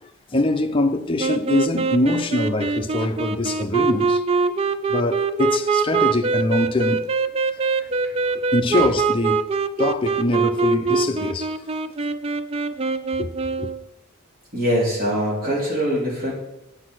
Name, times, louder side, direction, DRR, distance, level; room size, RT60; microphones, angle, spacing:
voice 1, 0.0-4.2 4.9-7.1 8.5-9.4 9.8-11.5 13.2-13.3 13.6-13.7, left 2 dB, 25° left, 0.6 m, -23 dB
sound 1, 1.2-13.8, right 4 dB, 25° right, 0.3 m, -23 dB
voice 2, 7.8-8.1 8.7-8.8 14.5-16.3, equal, 40° right, 3.6 m, -23 dB
7.8 x 6.3 x 6.2 m
head